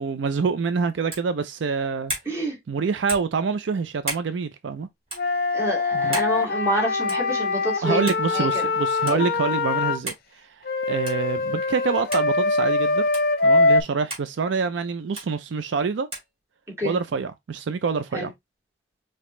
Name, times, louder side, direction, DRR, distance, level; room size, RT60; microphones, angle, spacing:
voice 1, 0.0-2.1 2.7-4.9 5.9-6.2 7.8-10.5 10.9-13.0 13.4-16.1 16.8-18.3, right 5 dB, 70° right, 0.4 m, -26 dB
sound 1, 1.1-1.3 2.1-2.3 3.1-3.3 4.0-4.3 5.1-5.2 6.1-6.3 7.1-7.3 8.1-8.3 9.1-9.2 10.1-10.3 11.0-11.3 12.1-12.3 13.1-13.3 14.1-14.3 15.2-15.3 16.1-16.3, right 1 dB, 30° right, 2.7 m, -33 dB
voice 2, 2.3-2.6 5.5-8.7 9.1-9.3 16.8-17.0 18.1-18.3, equal, 15° right, 2.1 m, -28 dB
Wind instrument woodwind instrument, 5.1-10.0 10.6-13.8, left 3 dB, 50° left, 0.7 m, -23 dB
5.1 x 2.8 x 3.1 m
head